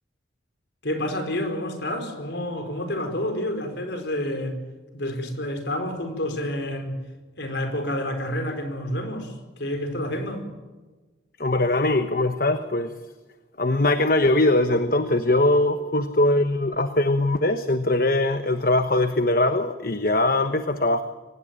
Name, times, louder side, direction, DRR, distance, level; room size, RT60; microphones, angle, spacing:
voice 1, 0.8-4.6 4.9-7.0 7.4-10.4, left 1 dB, 65° left, 4.8 m, -29 dB
voice 2, 11.4-12.9 13.6-21.0, left 2 dB, 50° left, 1.1 m, -21 dB
23.5 x 19.0 x 9.0 m
head